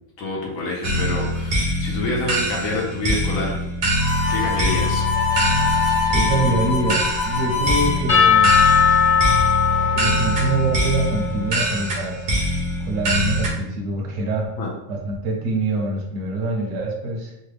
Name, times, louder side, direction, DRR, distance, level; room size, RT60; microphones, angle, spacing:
voice 1, 0.2-3.6 4.3-5.0 14.6-14.7, left 2 dB, 75° left, -2 dB, 1.1 m, -27 dB
sound 1, 0.8-13.5, equal, 55° right, 0.7 m, -23 dB
Harmonica, 4.0-8.0, left 5 dB, 35° left, 0.4 m, -24 dB
voice 2, 6.1-8.5 9.9-12.3 12.8-14.5 14.9-17.3, right 2 dB, 70° right, 1 dB, 1.0 m, -25 dB
Percussion / Church bell, 8.1-11.9, left 7 dB, 55° left, 1.3 m, -19 dB
3.2 x 2.2 x 3.3 m, 0.87 s
omnidirectional pair, 1.5 m